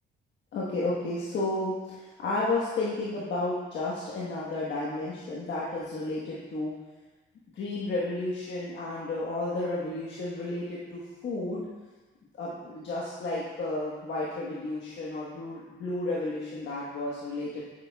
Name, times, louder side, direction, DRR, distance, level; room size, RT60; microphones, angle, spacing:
voice 1, 0.5-6.7 7.5-11.7 12.3-17.6, left 2 dB, 65° left, -6 dB, 1.3 m, -32 dB
8.9 x 6.8 x 2.3 m, 1.3 s
cardioid pair, 90°, 20 cm